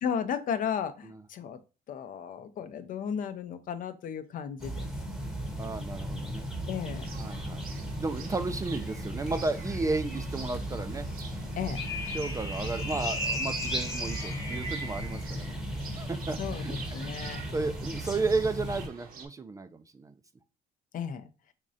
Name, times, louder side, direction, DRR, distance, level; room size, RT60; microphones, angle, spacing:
voice 1, 0.0-1.6 1.9-4.9 6.7-7.1 11.6-11.8 16.4-17.4 20.9-21.3, left 7 dB, 55° left, 10 dB, 0.5 m, -34 dB
sound 1, 4.6-18.9, equal, 5° right, 0.8 m, -36 dB
voice 2, 5.6-6.5 7.1-7.6 8.0-11.1 12.1-15.5 16.0-16.7 17.5-20.1, right 3 dB, 20° right, 10 dB, 0.3 m, -33 dB
sound 2, 6.9-19.3, right 5 dB, 60° right, 0.9 m, -48 dB
sound 3, 11.8-15.2, left 1 dB, 25° left, 1.2 m, -36 dB
3.7 x 3.1 x 2.6 m, 0.31 s
cardioid pair, 110°, 17 cm